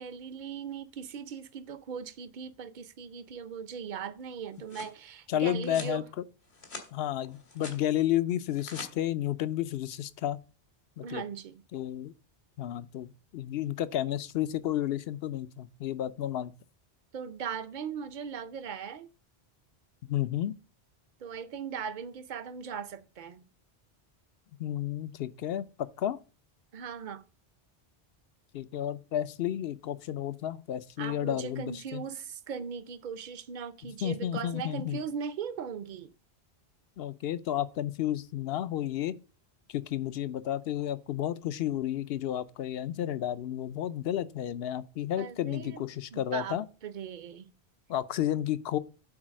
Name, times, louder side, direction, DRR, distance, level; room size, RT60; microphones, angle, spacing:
voice 1, 0.0-6.1 11.0-11.6 17.1-19.1 21.2-23.5 26.7-27.3 31.0-36.1 45.2-47.5, right 6 dB, 50° right, 0.8 m, -39 dB
sound 1, 4.3-5.0 5.6-6.0 6.4-6.9 7.2-7.8 8.4-8.9, left 3 dB, 85° left, 2.1 m, -44 dB
voice 2, 5.3-6.0 6.9-10.4 11.0-11.2 11.7-12.1 12.6-16.5 20.0-20.5 24.6-26.2 28.5-32.0 33.8-35.0 37.0-39.1 39.7-46.6 47.9-48.8, left 11 dB, 70° left, 0.8 m, -32 dB
8.7 x 4.0 x 6.3 m
omnidirectional pair, 1.1 m